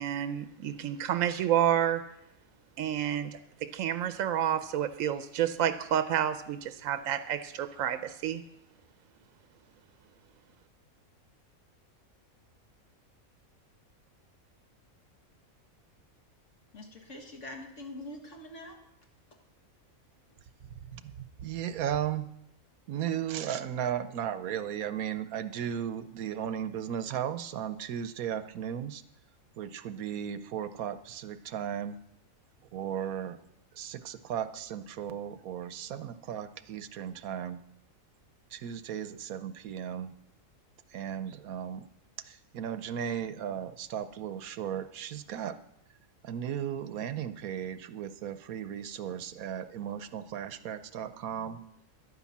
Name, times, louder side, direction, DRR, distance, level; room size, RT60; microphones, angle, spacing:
voice 1, 0.0-2.0 2.8-8.4, right 10 dB, 75° right, 10 dB, 1.0 m, -29 dB
voice 2, 16.7-18.8, left 1 dB, 60° left, 2 dB, 2.3 m, -44 dB
voice 3, 20.9-22.2 22.9-29.0 29.6-32.0 32.7-33.4 33.7-37.6 38.5-40.1 40.9-41.8 42.3-45.6 46.2-51.6, right 9 dB, 90° right, 12 dB, 1.2 m, -35 dB
11.0 x 9.8 x 7.3 m, 0.80 s
omnidirectional pair, 1.5 m